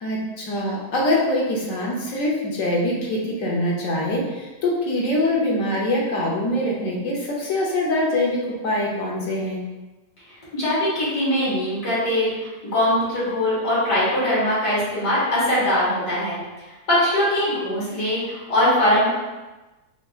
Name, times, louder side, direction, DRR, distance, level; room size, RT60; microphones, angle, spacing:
voice 1, 0.0-9.7, left 1 dB, 60° left, -3 dB, 1.2 m, -24 dB
voice 2, 10.5-12.3 12.7-16.4 16.9-19.1, left 1 dB, 90° left, -9 dB, 2.3 m, -21 dB
5.5 x 2.8 x 2.4 m, 1.1 s
omnidirectional pair, 1.7 m